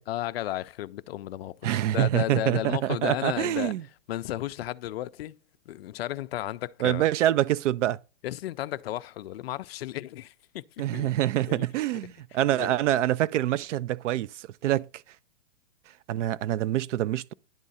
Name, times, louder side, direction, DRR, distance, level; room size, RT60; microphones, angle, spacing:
voice 1, 0.1-3.7 4.1-5.4 5.7-7.1 8.2-10.6 10.9-11.1 11.5-11.6 12.5-12.8, left 14 dB, 50° left, 0.4 m, -34 dB
voice 2, 1.6-3.8 6.8-8.0 10.8-14.9 16.1-17.3, right 13 dB, 65° right, 0.5 m, -26 dB
10.5 x 3.7 x 4.1 m
hypercardioid pair, 150°, 39 cm